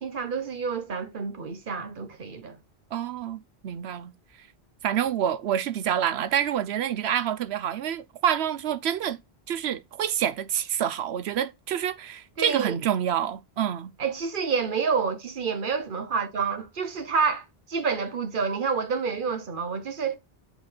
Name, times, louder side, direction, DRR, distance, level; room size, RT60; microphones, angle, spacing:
voice 1, 0.0-2.6 12.4-12.8 14.0-20.2, right 5 dB, 55° right, 1.1 m, -28 dB
voice 2, 2.9-4.1 4.8-9.2 9.5-13.9, right 10 dB, 85° right, 0.9 m, -27 dB
8.1 x 3.5 x 3.9 m
omnidirectional pair, 1.1 m